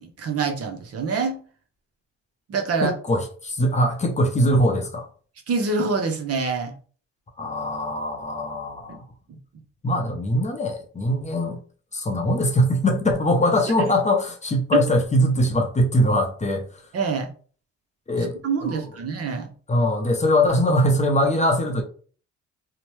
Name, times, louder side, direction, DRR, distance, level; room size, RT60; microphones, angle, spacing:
voice 1, 0.0-1.4 2.5-2.9 5.5-6.7 8.9-9.0 9.3-9.4 13.8-13.9 14.7-14.8 16.9-17.3 18.2-19.5, right 4 dB, 50° right, 0.7 m, -25 dB
voice 2, 2.8-5.1 7.4-9.0 9.8-11.6 11.9-16.6 18.1-18.8 19.7-21.8, equal, 25° left, 0.6 m, -22 dB
2.9 x 2.1 x 3.0 m
cardioid pair, 90°, 30 cm